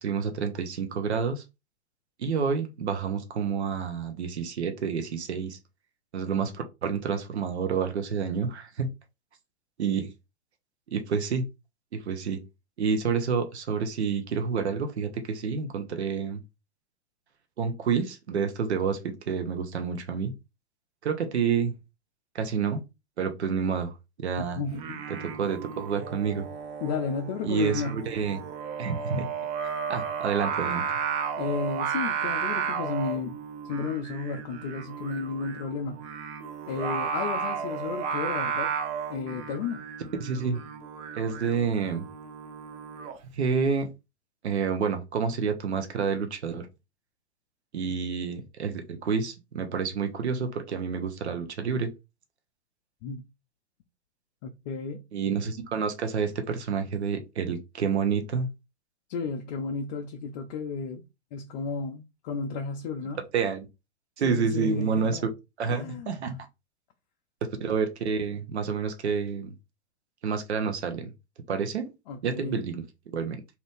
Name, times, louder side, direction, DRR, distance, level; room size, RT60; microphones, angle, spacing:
voice 1, 0.0-1.4 2.2-5.6 6.1-8.9 9.8-10.1 10.9-11.4 11.9-12.4 12.8-16.4 17.6-20.3 21.0-21.7 22.3-22.8 23.2-24.6 25.2-26.5 27.4-28.4 28.8-29.3 29.9-30.8 40.2-40.6 41.1-42.1 43.3-43.9 44.4-46.7 47.7-51.9 55.1-58.5 63.3-63.7 64.2-65.2 65.6-66.4 67.4-69.5 70.2-71.1 71.5-71.9 72.2-73.4, right 6 dB, 75° right, 0.8 m, -29 dB
voice 2, 24.6-25.0 26.8-28.0 31.4-33.4 33.7-36.0 36.7-38.7 39.1-39.8 53.0-53.2 54.4-55.0 59.1-61.0 61.3-63.2 64.2-65.3 65.7-66.1 72.1-72.6, left 5 dB, 40° left, 0.5 m, -33 dB
Singing, 24.7-43.2, right 6 dB, 20° right, 0.4 m, -33 dB
2.9 x 2.5 x 3.4 m
hypercardioid pair, 110°, 33 cm